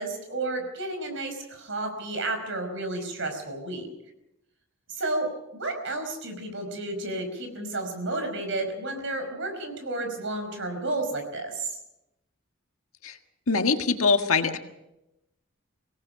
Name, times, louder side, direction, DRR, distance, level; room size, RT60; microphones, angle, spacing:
voice 1, 0.0-3.9 4.9-11.7, right 2 dB, 65° right, 6 dB, 5.1 m, -32 dB
voice 2, 13.5-14.6, left 4 dB, 85° left, 6 dB, 1.7 m, -23 dB
25.0 x 18.0 x 5.9 m, 0.89 s
head